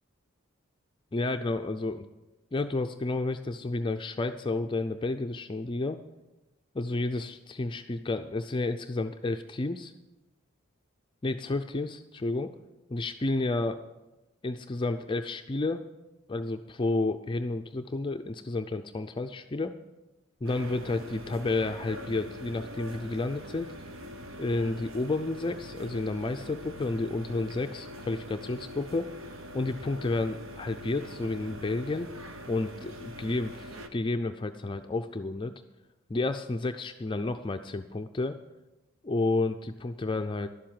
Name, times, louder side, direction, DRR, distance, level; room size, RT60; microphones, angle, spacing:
voice 1, 1.1-2.0 2.5-6.0 6.7-9.9 11.2-12.5 12.9-13.8 14.4-15.9 16.3-19.8 20.4-23.7 24.4-29.1 29.5-32.1 32.5-35.5 36.1-38.4 39.0-40.5, left 2 dB, 25° left, 7 dB, 0.4 m, -31 dB
sound 1, 20.4-33.9, equal, 70° right, 1.1 m, -43 dB
11.5 x 7.6 x 8.8 m, 1.0 s
head